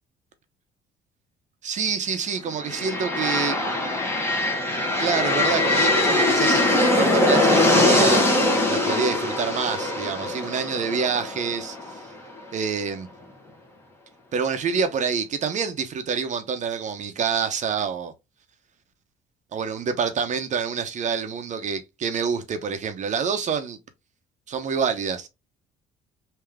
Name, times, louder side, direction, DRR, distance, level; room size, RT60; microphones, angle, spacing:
voice 1, 1.6-3.6 5.0-8.3 8.7-11.8 12.5-13.1 14.3-18.1 19.5-23.8 24.5-25.3, right 6 dB, 45° right, 0.8 m, -27 dB
sound 1, 2.6-12.4, left 2 dB, 15° left, 1.4 m, -22 dB
3.5 x 2.8 x 3.4 m
cardioid pair, 110°, 17 cm